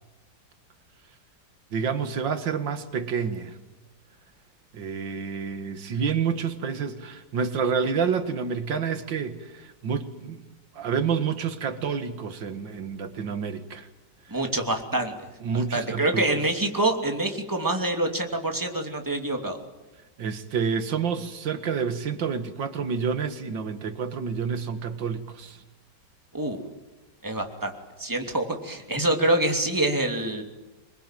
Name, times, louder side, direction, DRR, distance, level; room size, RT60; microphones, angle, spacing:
voice 1, 1.7-3.6 4.7-10.4 10.7-13.9 14.3-14.4 15.4-16.3 20.2-25.6, right 6 dB, 90° right, 2.3 m, -29 dB
voice 2, 14.3-15.1 15.5-19.6 26.3-26.6 27.2-27.7 28.0-30.4, right 1 dB, 10° right, 2.8 m, -26 dB
27.0 x 22.5 x 9.2 m
omnidirectional pair, 1.9 m